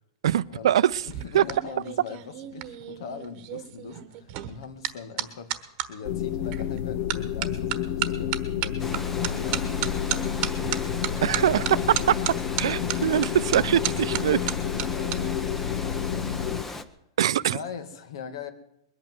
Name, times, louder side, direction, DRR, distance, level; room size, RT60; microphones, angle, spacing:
voice 1, 0.2-1.1 1.3-1.4 11.2-12.2 12.6-14.5 17.2-17.6, right 11 dB, 85° right, 0.6 m, -23 dB
sound 1, 0.9-5.9 6.5-6.8 7.1-15.2 15.5-15.8, right 14 dB, 35° right, 1.2 m, -33 dB
voice 2, 1.0-5.5 5.8-10.4 10.8-12.1 12.6-13.9 14.8-15.5 17.5-18.5, left 6 dB, 70° left, 2.1 m, -41 dB
sound 2, 6.0-16.6, left 9 dB, 45° left, 0.7 m, -30 dB
Water, 8.8-16.8, left 2 dB, 10° left, 0.8 m, -37 dB
21.5 x 8.8 x 7.7 m
supercardioid pair, 165°, 3 cm